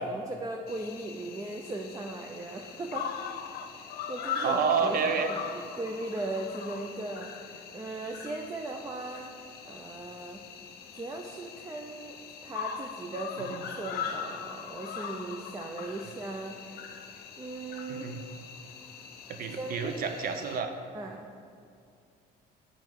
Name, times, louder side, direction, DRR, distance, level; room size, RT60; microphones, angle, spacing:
voice 1, 0.0-5.0 5.3-9.3 9.7-10.4 10.9-12.2 12.4-16.6 17.4-18.1 19.6-20.0 20.9-21.2, right 2 dB, 20° right, 2 dB, 0.5 m, -38 dB
Cricket, 0.7-20.6, left 7 dB, 65° left, 0.7 m, -41 dB
voice 2, 4.4-5.3 13.5-13.6 17.9-18.2 19.3-20.7, right 5 dB, 55° right, 7 dB, 0.7 m, -29 dB
7.7 x 5.3 x 4.6 m, 2.5 s
cardioid pair, 110°, 17 cm